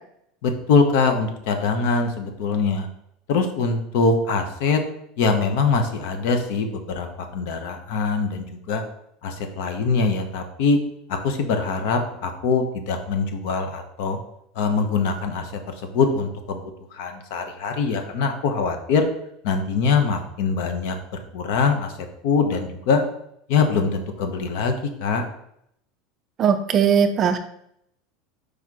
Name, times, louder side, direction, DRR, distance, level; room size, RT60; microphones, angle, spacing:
voice 1, 0.4-2.9 3.3-4.8 5.2-7.1 7.3-8.8 9.2-10.8 11.2-14.2 14.5-16.6 16.9-19.0 19.4-21.9 22.2-23.0 23.5-25.2, left 4 dB, 55° left, 6 dB, 0.9 m, -23 dB
voice 2, 26.4-27.4, right 7 dB, 25° right, 8 dB, 0.4 m, -19 dB
4.9 x 4.3 x 4.8 m, 0.74 s
supercardioid pair, 175°, 0 cm